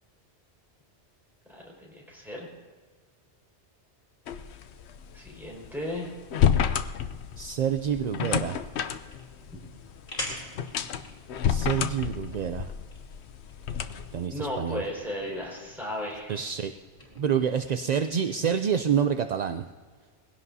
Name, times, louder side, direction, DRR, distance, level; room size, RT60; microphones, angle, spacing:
voice 1, 1.5-2.5 5.1-6.1 9.5-9.6 14.3-16.4, left 1 dB, ahead, -4 dB, 4.9 m, -35 dB
sound 1, 4.3-14.3, left 8 dB, 75° left, 0.9 m, -30 dB
voice 2, 7.4-8.6 11.5-12.7 14.1-14.8 16.3-16.7 17.2-19.7, right 8 dB, 55° right, 8 dB, 0.5 m, -27 dB
sound 2, 8.7-17.2, equal, 50° left, 3.7 m, -45 dB
20.5 x 16.5 x 2.7 m, 1.5 s
omnidirectional pair, 1.2 m